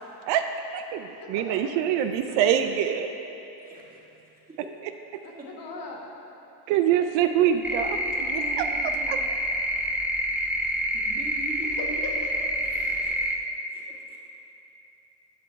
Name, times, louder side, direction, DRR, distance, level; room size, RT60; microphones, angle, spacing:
voice 1, 0.2-3.1 6.7-9.3, right 9 dB, 70° right, 7 dB, 0.5 m, -25 dB
voice 2, 1.2-2.0 5.2-6.1 11.6-12.9, left 2 dB, 50° left, -2 dB, 1.5 m, -40 dB
voice 3, 1.7-2.6 3.6-4.6 8.3-8.5 10.9-12.0 12.6-13.3 13.7-14.2, right 1 dB, 20° right, -5 dB, 2.0 m, -43 dB
sound 1, 7.6-13.4, right 1 dB, 5° right, 0.6 m, -27 dB
10.5 x 6.1 x 3.5 m, 2.9 s
supercardioid pair, 90°, 45 cm